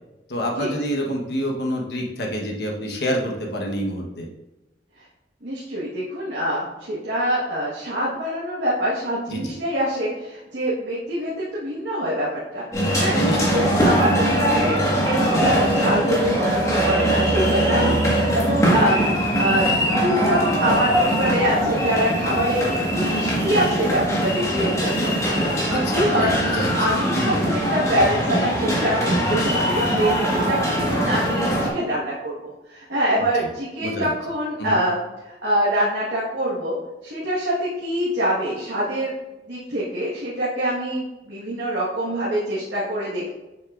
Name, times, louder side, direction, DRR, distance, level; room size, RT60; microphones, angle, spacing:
voice 1, 0.3-4.3 9.3-9.5 13.1-13.6 17.7-18.1 25.7-26.7 27.1-27.4 33.4-33.5 33.8-34.1 34.6-34.8, equal, 65° left, 0 dB, 1.2 m, -27 dB
voice 2, 5.4-12.6 13.0-13.2 13.5-18.0 18.3-19.1 19.4-26.3 26.7-35.0 35.2-36.8 37.0-39.1 39.5-43.3, equal, 90° right, -8 dB, 1.6 m, -25 dB
sound 1, 12.7-31.7, equal, 20° left, 1.6 m, -21 dB
7.4 x 6.2 x 2.5 m, 1.0 s
head